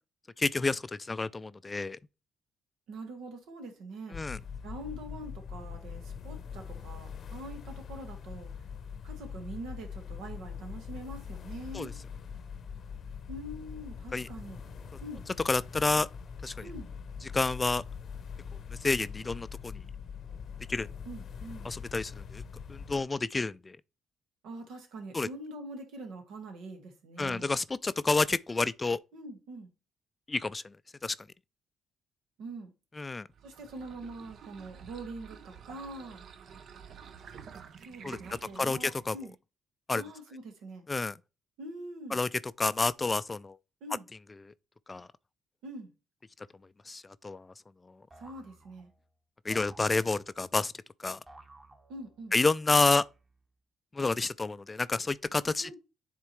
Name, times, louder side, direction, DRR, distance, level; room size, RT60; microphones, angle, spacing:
voice 1, 0.4-2.0 4.1-4.4 11.7-11.9 14.1-14.3 15.5-16.1 16.4-16.7 17.3-17.8 18.8-19.8 20.7-20.9 21.6-22.4 22.7-23.8 25.1-25.3 27.2-29.0 30.3-30.7 31.0-31.1 33.0-33.3 38.0-38.2 38.6-39.2 39.9-40.0 40.9-41.2 42.1-42.3 42.6-43.6 44.9-45.1 46.9-47.5 49.5-50.7 51.0-51.2 52.3-53.0 53.9-55.7, left 3 dB, 25° left, 0.3 m, -29 dB
voice 2, 2.9-4.2 4.6-8.6 9.0-12.0 13.3-14.6 15.0-15.2 16.6-16.9 21.1-21.7 24.4-27.6 29.1-29.7 32.4-32.7 33.4-36.2 37.8-39.3 39.9-40.9 41.6-42.2 43.8-44.1 45.6-45.9 48.2-48.9 51.9-52.3 55.6-55.8, right 2 dB, 85° right, 1.7 m, -44 dB
sound 1, 4.1-23.0, left 6 dB, 55° left, 0.7 m, -43 dB
sound 2, 33.3-39.4, right 7 dB, 65° right, 0.6 m, -50 dB
sound 3, 48.1-49.1 49.5-50.4 51.3-52.3 52.8-53.5, right 2 dB, 25° right, 1.3 m, -55 dB
9.5 x 3.7 x 3.1 m
cardioid pair, 90°, 0 cm